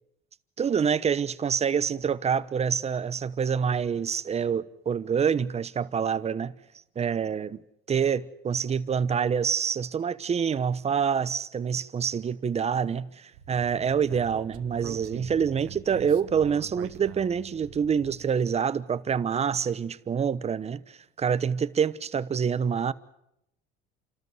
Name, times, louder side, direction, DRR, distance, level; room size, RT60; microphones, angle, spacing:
voice 1, 0.6-6.5 7.0-7.6 7.9-20.8 21.2-22.9, right 7 dB, 30° right, 1.0 m, -26 dB
Speech, 13.3-18.3, right 11 dB, 85° right, 1.5 m, -44 dB
29.5 x 13.5 x 9.6 m
supercardioid pair, 100°, 21 cm